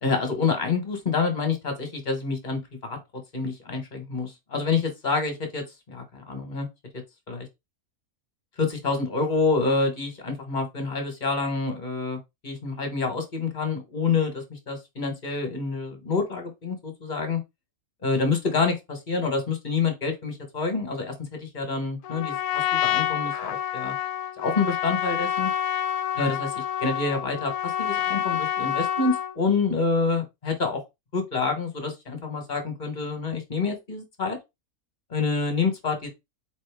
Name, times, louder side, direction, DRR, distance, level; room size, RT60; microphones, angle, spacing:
voice 1, 0.0-6.7 7.3-7.5 8.6-12.2 12.4-17.4 18.0-23.9 24.4-25.5 26.2-26.5 26.8-30.8 31.1-34.4 35.1-36.1, left 4 dB, 35° left, 1.2 m, -27 dB
Trumpet, 22.0-29.4, left 10 dB, 85° left, 1.1 m, -28 dB
4.3 x 3.1 x 3.4 m
omnidirectional pair, 1.6 m